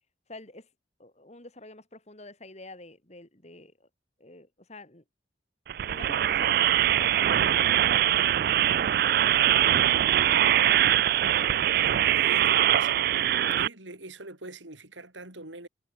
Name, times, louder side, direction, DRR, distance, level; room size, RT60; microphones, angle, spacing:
voice 1, 0.3-0.7 1.0-3.9 4.2-5.0 5.8-10.5, left 2 dB, 35° left, 3.5 m, -48 dB
sound 1, 5.7-13.7, right 11 dB, 55° right, 0.3 m, -22 dB
voice 2, 11.8-15.7, right 2 dB, 85° right, 6.6 m, -43 dB
head